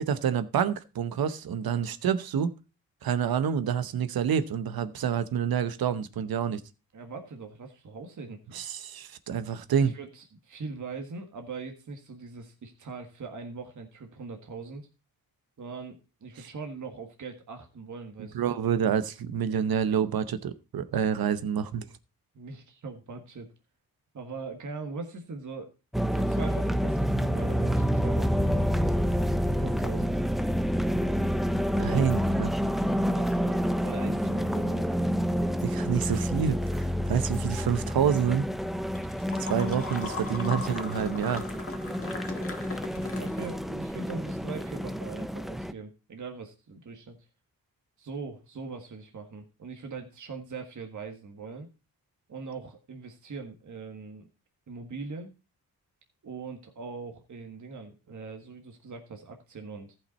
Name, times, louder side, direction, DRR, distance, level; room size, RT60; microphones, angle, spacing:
voice 1, 0.1-2.5 3.0-6.6 8.5-9.9 18.3-21.9 31.8-32.5 35.6-38.5 39.4-41.4, right 8 dB, 80° right, 0.9 m, -28 dB
voice 2, 6.9-8.4 9.8-14.9 15.6-18.5 22.3-23.5 24.1-25.7 26.1-28.9 29.6-30.1 31.8-32.0 33.1-34.9 43.1-47.2 48.0-51.7 52.3-54.3 54.7-55.3 56.2-60.0, right 4 dB, 55° right, 1.6 m, -41 dB
sound 1, 25.9-45.7, equal, ahead, 0.5 m, -28 dB
sound 2, 38.6-43.9, left 3 dB, 40° left, 1.8 m, -39 dB
14.5 x 5.8 x 4.1 m
cardioid pair, 80°, 36 cm